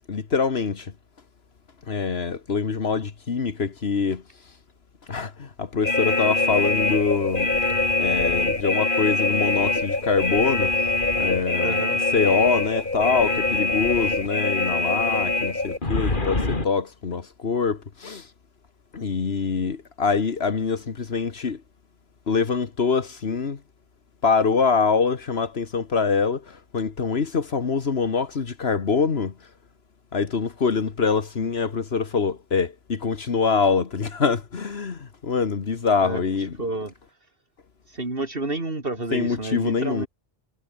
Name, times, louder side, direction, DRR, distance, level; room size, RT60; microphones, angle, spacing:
voice 1, 0.1-0.9 1.9-4.2 5.1-7.5 8.0-11.8 12.1-18.3 18.9-21.6 22.3-23.6 24.2-29.3 30.1-36.6 39.1-40.1, left 5 dB, 80° left, 1.8 m, -24 dB
sound 1, 5.8-16.7, left 2 dB, 55° left, 3.1 m, -24 dB
voice 2, 11.6-12.0 36.0-36.2 36.6-36.9 37.9-40.1, right 2 dB, 65° right, 3.8 m, -29 dB
omnidirectional pair, 1.1 m